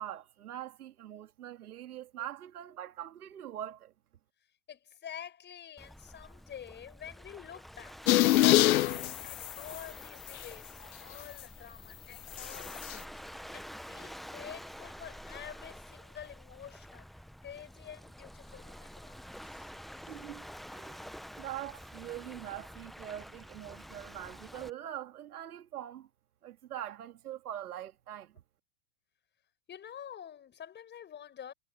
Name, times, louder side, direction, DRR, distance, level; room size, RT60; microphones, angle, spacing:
voice 1, 0.0-3.9 20.1-26.1 26.4-28.4, right 11 dB, 75° right, 2.7 m, -43 dB
voice 2, 4.7-8.0 8.4-13.2 13.5-17.1 17.4-19.7 29.7-31.5, left 9 dB, 25° left, 7.3 m, -47 dB
Waves surf, 5.8-24.7, equal, ahead, 1.2 m, -48 dB
sound 1, 8.1-9.8 10.3-10.4 12.4-12.9, left 16 dB, 70° left, 0.8 m, -24 dB
hypercardioid pair, 120°, 45 cm